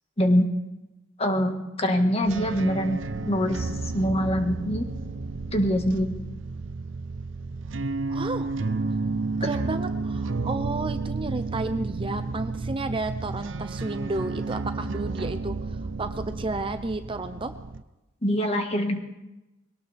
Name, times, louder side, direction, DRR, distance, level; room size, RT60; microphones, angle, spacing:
voice 1, 0.2-0.5 1.2-3.0 3.2-4.8 5.5-6.1 18.2-19.0, equal, 30° left, 4 dB, 1.6 m, -24 dB
sound 1, 2.2-17.8, right 3 dB, 70° right, 0.7 m, -32 dB
voice 2, 8.1-8.5 9.4-17.5, right 2 dB, 25° right, 9 dB, 0.6 m, -32 dB
22.0 x 18.0 x 3.5 m, 0.99 s
head